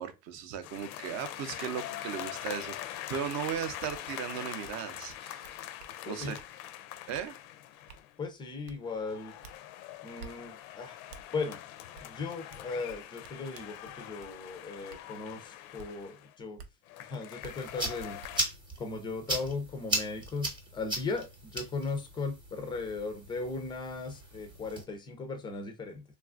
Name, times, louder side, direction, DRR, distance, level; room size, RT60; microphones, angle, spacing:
voice 1, 0.0-5.5 6.0-6.4 7.1-7.3, right 8 dB, 35° right, 0.6 m, -37 dB
sound 1, 0.6-8.1 8.8-16.3 16.9-18.4, left 13 dB, 65° left, 0.5 m, -43 dB
sound 2, 3.5-3.6 3.9-4.0 4.6-4.8 5.1-5.9 6.4-6.5 7.1-7.3 7.9-8.0 8.6-8.8 9.4-9.6 10.2-10.3 11.1-11.2 11.9-12.1 12.5-14.3 14.9-15.0 15.8-15.9 16.6-16.7 17.4-17.5 18.2-18.3 19.8-19.9 20.4-20.5, right 5 dB, 80° right, 0.7 m, -50 dB
voice 2, 6.0-6.4 8.2-9.3 10.0-11.0 11.3-11.6 12.1-16.6 17.0-18.2 18.8-26.0, left 3 dB, 10° left, 0.4 m, -37 dB
sound 3, 17.4-24.8, right 1 dB, 10° right, 0.8 m, -38 dB
3.2 x 2.4 x 2.4 m
supercardioid pair, 120°, 47 cm